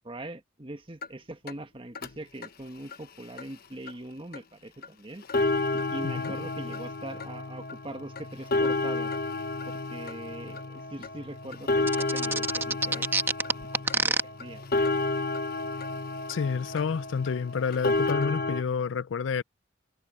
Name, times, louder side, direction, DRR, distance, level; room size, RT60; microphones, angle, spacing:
voice 1, 0.0-5.2 5.7-9.1 9.6-13.1 13.9-14.6, right 1 dB, 30° right, 1.5 m, -42 dB
sound 1, 1.0-1.1 1.5-1.6 1.9-2.1 2.4-2.5 2.9-3.0 3.4-3.5 3.9-4.0 4.3-4.4 4.8-4.9 5.2-18.6, left 2 dB, 55° left, 1.2 m, -31 dB
sound 2, 11.9-14.2, right 3 dB, 10° right, 1.2 m, -26 dB
voice 2, 16.3-19.4, left 6 dB, 85° left, 0.4 m, -29 dB
head